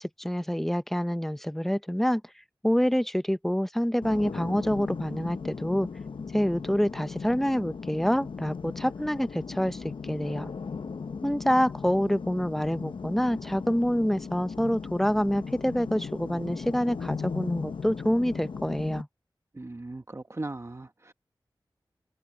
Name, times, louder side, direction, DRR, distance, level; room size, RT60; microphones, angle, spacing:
voice 1, 0.0-2.2 2.6-5.9 6.3-10.5 11.2-19.1, equal, 5° left, 0.8 m, -27 dB
sound 1, 4.0-19.0, left 5 dB, 80° left, 0.7 m, -37 dB
voice 2, 19.5-21.1, right 2 dB, 35° right, 1.2 m, -38 dB
wide cardioid pair, 70°, 8 cm